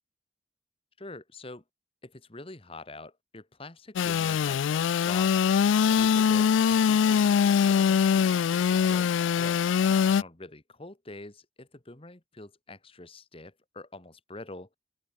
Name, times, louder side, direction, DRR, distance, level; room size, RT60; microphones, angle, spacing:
voice 1, 1.0-1.6 2.0-9.6 10.1-14.7, left 2 dB, 30° left, 1.7 m, -45 dB
Engine / Sawing, 4.0-10.2, left 7 dB, 80° left, 0.3 m, -23 dB
open air
head